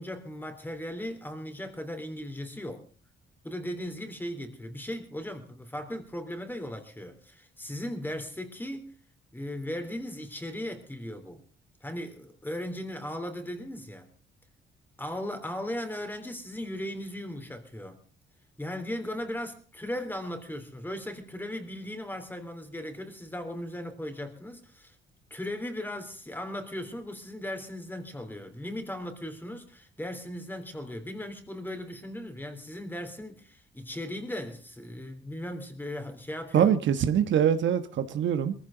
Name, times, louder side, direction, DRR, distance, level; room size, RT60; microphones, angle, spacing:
voice 1, 0.0-2.9 3.4-9.0 9.3-11.4 11.8-14.1 15.0-18.0 18.6-25.0 25.3-36.7, left 1 dB, 10° left, 3.6 m, -37 dB
voice 2, 36.5-38.5, right 9 dB, 70° right, 1.3 m, -24 dB
21.5 x 15.0 x 3.9 m
cardioid pair, 90°, 20 cm